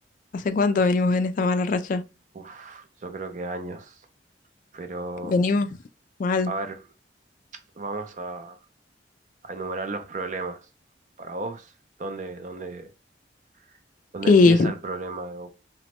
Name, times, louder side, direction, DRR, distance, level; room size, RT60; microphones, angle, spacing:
voice 1, 0.3-2.0 5.3-5.7 6.2-6.5 14.3-14.7, left 3 dB, 50° left, 0.3 m, -20 dB
voice 2, 2.3-4.0 4.7-5.4 6.5-6.9 7.8-8.6 9.4-10.6 11.2-11.7 12.0-12.9 14.1-15.5, right 3 dB, 45° right, 0.5 m, -34 dB
3.0 x 2.1 x 2.9 m
head